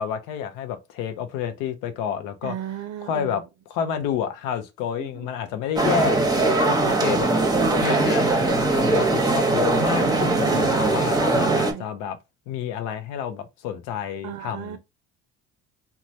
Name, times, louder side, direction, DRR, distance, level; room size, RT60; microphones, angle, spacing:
voice 1, 0.0-2.5 3.0-3.4 3.7-7.3 7.8-12.2 12.5-14.8, left 8 dB, 90° left, 0.6 m, -29 dB
voice 2, 2.4-3.4 5.0-5.3 7.0-7.9 10.0-10.8 11.4-11.8 14.2-14.8, right 11 dB, 65° right, 0.5 m, -35 dB
sound 1, 5.8-11.7, right 3 dB, 10° right, 0.8 m, -21 dB
3.0 x 2.2 x 2.6 m
supercardioid pair, 80°, 31 cm